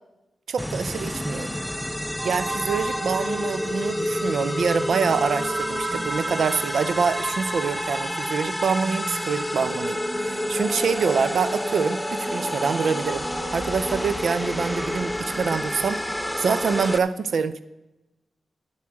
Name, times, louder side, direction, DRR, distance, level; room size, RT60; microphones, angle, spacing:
voice 1, 0.5-1.5 2.2-13.3 13.5-16.0 16.4-17.6, right 5 dB, 75° right, 14 dB, 0.6 m, -25 dB
sound 1, 0.6-17.0, left 1 dB, 5° left, 0.7 m, -29 dB
sound 2, 2.2-14.9, right 2 dB, 45° right, 1.5 m, -35 dB
9.4 x 7.5 x 7.6 m, 0.98 s
cardioid pair, 60°, 0 cm